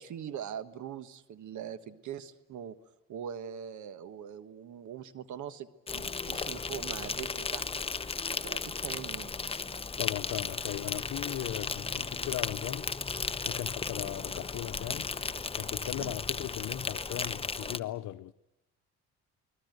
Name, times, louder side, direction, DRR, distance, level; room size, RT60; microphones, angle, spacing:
voice 1, 0.0-2.7 3.1-7.6 8.4-9.3 16.0-16.1, right 9 dB, 75° right, 1.5 m, -42 dB
Insect, 5.9-17.8, left 4 dB, 20° left, 0.9 m, -35 dB
voice 2, 10.0-12.9 13.4-15.1 15.5-18.3, left 14 dB, 75° left, 0.9 m, -37 dB
29.5 x 20.5 x 8.0 m
cardioid pair, 90°, 30 cm